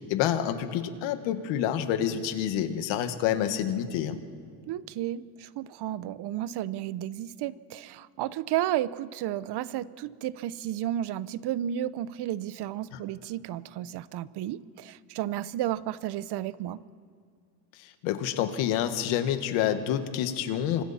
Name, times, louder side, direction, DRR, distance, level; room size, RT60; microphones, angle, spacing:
voice 1, 0.0-4.2 17.8-20.8, left 10 dB, 85° left, 8 dB, 1.8 m, -28 dB
voice 2, 4.7-16.8, right 12 dB, 65° right, 17 dB, 0.9 m, -32 dB
28.5 x 25.0 x 4.3 m, 2.2 s
cardioid pair, 110°, 43 cm